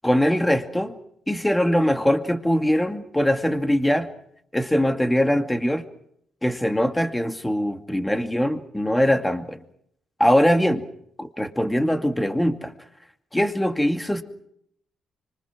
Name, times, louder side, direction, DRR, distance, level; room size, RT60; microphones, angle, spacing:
voice 1, 0.0-0.9 1.3-4.1 4.5-5.8 6.4-9.6 10.2-10.8 11.2-12.7 13.3-14.2, equal, 10° left, 6 dB, 2.3 m, -22 dB
25.5 x 24.0 x 6.1 m, 0.72 s
cardioid pair, 90°, 0 cm